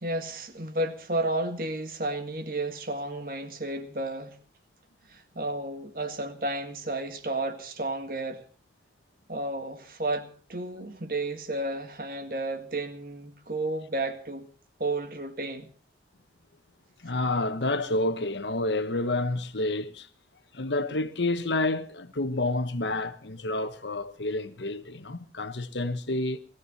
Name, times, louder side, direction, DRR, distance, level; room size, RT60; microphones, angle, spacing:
voice 1, 0.0-4.4 5.1-8.4 9.3-14.5 14.8-15.7, right 2 dB, 50° right, 1.8 m, -32 dB
voice 2, 17.0-20.1 20.5-26.4, left 2 dB, 85° left, 1.3 m, -29 dB
19.5 x 14.5 x 4.2 m
head